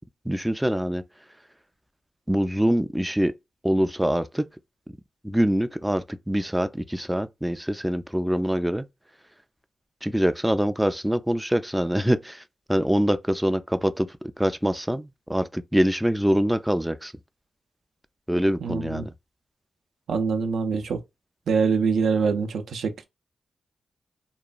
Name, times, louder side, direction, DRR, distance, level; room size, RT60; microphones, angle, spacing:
voice 1, 0.3-1.0 2.3-3.3 3.6-4.4 5.2-8.9 10.0-12.4 12.7-14.1 14.4-17.1 18.3-19.1, equal, 5° right, 0.3 m, -24 dB
voice 2, 18.6-19.1 20.1-21.0 21.5-23.0, right 5 dB, 85° right, 0.4 m, -24 dB
2.9 x 2.2 x 2.4 m
cardioid pair, 60°, 0 cm